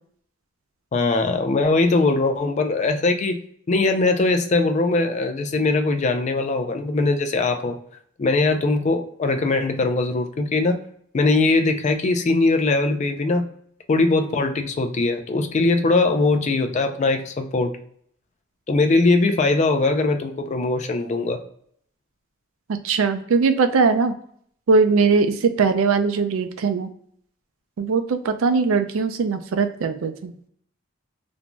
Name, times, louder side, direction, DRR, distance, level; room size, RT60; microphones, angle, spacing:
voice 1, 0.9-3.4 3.7-7.8 8.2-10.8 11.1-13.5 13.9-17.7 18.7-21.4, left 3 dB, 35° left, 7 dB, 0.3 m, -21 dB
voice 2, 22.8-24.1 24.7-26.9 27.8-30.3, right 4 dB, 85° right, 8 dB, 0.4 m, -20 dB
2.5 x 2.2 x 2.8 m, 0.64 s
head